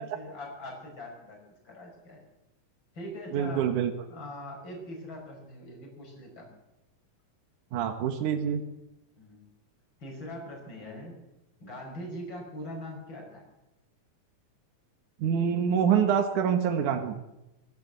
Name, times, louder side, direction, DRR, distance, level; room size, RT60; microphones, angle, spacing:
voice 1, 0.0-2.2 2.9-3.7 4.1-6.6 9.2-9.5 10.0-11.2 11.6-13.5, left 1 dB, 35° left, 1 dB, 6.6 m, -42 dB
voice 2, 3.3-3.9 7.7-8.6 15.2-17.2, right 8 dB, 80° right, 5 dB, 2.8 m, -26 dB
23.0 x 15.0 x 8.1 m, 0.95 s
omnidirectional pair, 3.5 m